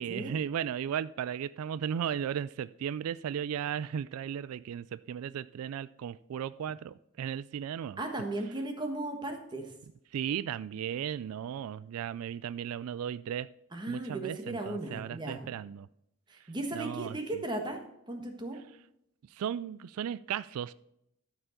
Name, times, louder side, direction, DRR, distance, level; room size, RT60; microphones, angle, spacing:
voice 1, 0.0-8.0 10.1-13.5 13.9-15.9 16.4-17.4 19.3-20.7, right 9 dB, 85° right, 16 dB, 0.3 m, -36 dB
voice 2, 8.0-9.7 13.7-15.4 16.3-17.8 18.1-18.6, right 2 dB, 20° right, 3 dB, 1.4 m, -36 dB
12.5 x 4.9 x 6.5 m, 0.78 s
head